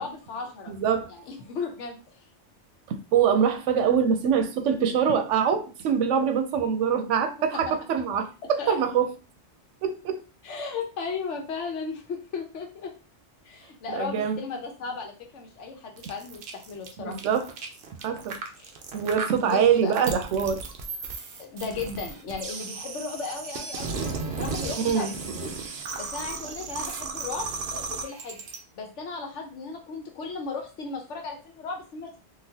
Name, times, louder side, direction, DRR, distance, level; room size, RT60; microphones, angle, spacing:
voice 1, 0.0-0.7 1.1-2.2 7.4-7.7 8.4-8.8 10.4-12.9 13.4-17.2 18.6-18.7 19.4-19.9 21.4-25.6 26.0-28.4 28.8-32.3, left 4 dB, 80° left, 1.1 m, -36 dB
voice 2, 0.7-1.1 2.9-9.1 9.8-10.2 13.9-14.4 17.0-17.5 18.0-18.4 18.9-20.6 24.8-25.1, right 7 dB, 90° right, 0.9 m, -24 dB
sound 1, 16.0-28.6, right 4 dB, 65° right, 0.8 m, -35 dB
3.9 x 2.5 x 2.7 m
omnidirectional pair, 1.2 m